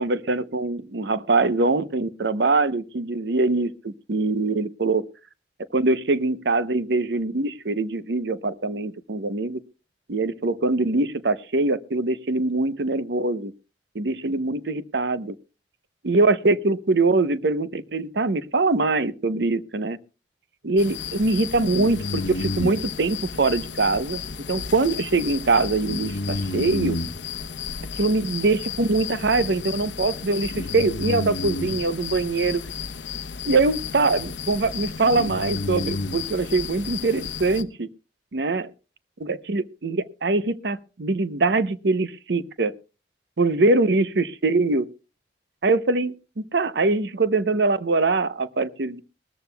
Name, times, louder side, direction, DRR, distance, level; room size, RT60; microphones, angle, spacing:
voice 1, 0.0-5.1 5.7-9.6 10.1-13.5 13.9-15.4 16.0-20.0 20.6-24.2 24.5-27.0 27.9-32.6 33.4-37.9 38.3-38.7 39.2-42.7 43.4-44.9 45.6-46.1 46.5-49.0, right 3 dB, 65° right, 14 dB, 0.7 m, -23 dB
sound 1, 20.8-37.6, left 4 dB, 75° left, 0.8 m, -32 dB
20.0 x 14.0 x 2.2 m, 0.31 s
head